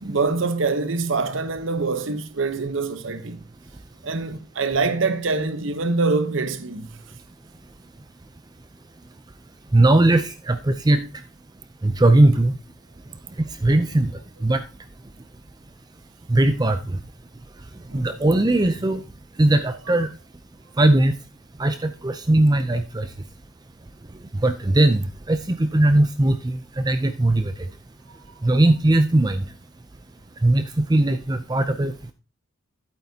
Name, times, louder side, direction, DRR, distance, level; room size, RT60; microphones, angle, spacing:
voice 1, 0.0-3.5 4.0-7.0 17.9-18.1, right 3 dB, 75° right, 1.0 m, -25 dB
voice 2, 9.7-11.0 11.8-12.5 13.6-14.1 14.4-14.6 16.3-17.0 17.9-19.0 19.4-20.1 20.8-21.1 21.6-23.1 24.4-27.5 28.4-29.4 30.4-32.1, right 1 dB, 20° right, 0.5 m, -19 dB
11.5 x 8.8 x 2.8 m
head